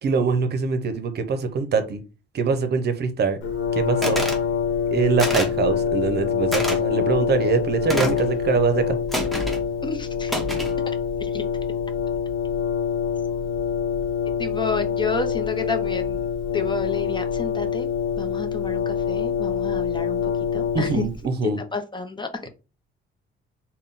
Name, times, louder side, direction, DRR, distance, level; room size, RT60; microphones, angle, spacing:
voice 1, 0.0-2.0 2.3-3.4 3.7-4.2 4.9-9.0 20.7-21.6, right 5 dB, 55° right, 9 dB, 0.7 m, -23 dB
Brass instrument, 3.4-21.2, left 7 dB, 80° left, 1.0 m, -25 dB
sound 1, 4.0-4.4 5.2-5.6 6.5-6.8 7.9-8.3 9.1-9.6 10.3-10.8, equal, ahead, 0.9 m, -27 dB
voice 2, 9.8-10.3 11.2-11.4 14.4-16.2 16.5-17.9 18.2-21.0 21.7-22.5, left 4 dB, 25° left, 7 dB, 0.6 m, -30 dB
3.6 x 2.2 x 3.9 m, 0.31 s
cardioid pair, 90°, 20 cm